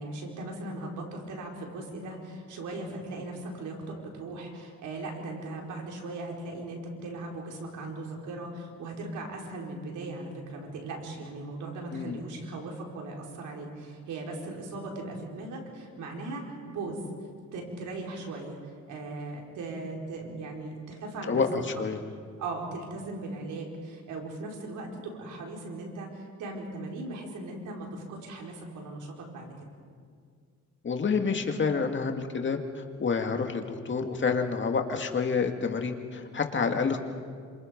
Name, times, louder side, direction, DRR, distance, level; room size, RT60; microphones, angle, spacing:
voice 1, 0.0-17.0 17.5-18.6 18.9-21.4 21.9-22.1 22.4-29.5, right 2 dB, 80° right, 0 dB, 5.1 m, -38 dB
voice 2, 21.3-22.0 30.8-37.0, left 5 dB, 40° left, 4 dB, 2.2 m, -28 dB
28.0 x 26.5 x 5.4 m, 2.1 s
cardioid pair, 90°, 30 cm